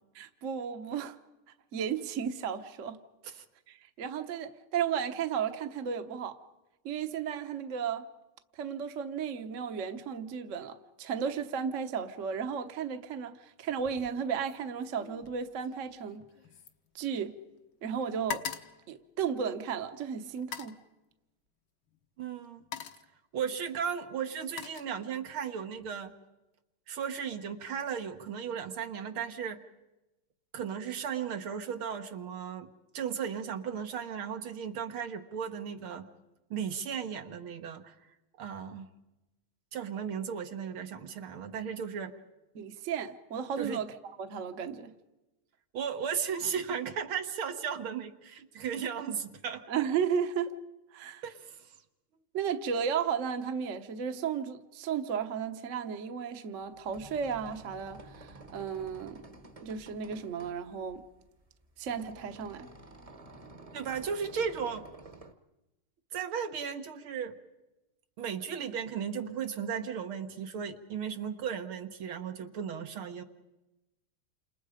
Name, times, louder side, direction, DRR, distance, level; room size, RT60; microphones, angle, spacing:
voice 1, 0.1-1.2 1.7-3.0 3.7-6.4 6.8-8.1 8.5-16.2 16.9-17.4 17.8-18.4 18.9-20.8 42.5-44.9 49.7-50.6 50.9-51.2 52.3-59.2 59.6-61.0 61.8-62.7, right 7 dB, 45° right, 1.2 m, -34 dB
sound 1, 13.8-14.2 14.5-17.6 17.9-19.8 20.4-20.8 21.9-22.1 22.4-23.2 24.0-25.4 25.8-26.2, left 8 dB, 70° left, 1.9 m, -43 dB
voice 2, 22.2-22.6 23.3-26.1 26.9-29.6 30.5-32.7 32.9-36.1 36.5-38.0 38.4-38.9 39.7-42.2 43.6-43.8 45.7-49.6 51.2-51.6 63.7-64.8 66.1-67.4 68.2-73.2, right 7 dB, 75° right, 2.2 m, -35 dB
sound 2, 56.6-65.3, right 2 dB, 20° right, 1.1 m, -51 dB
29.0 x 27.5 x 5.1 m
omnidirectional pair, 2.3 m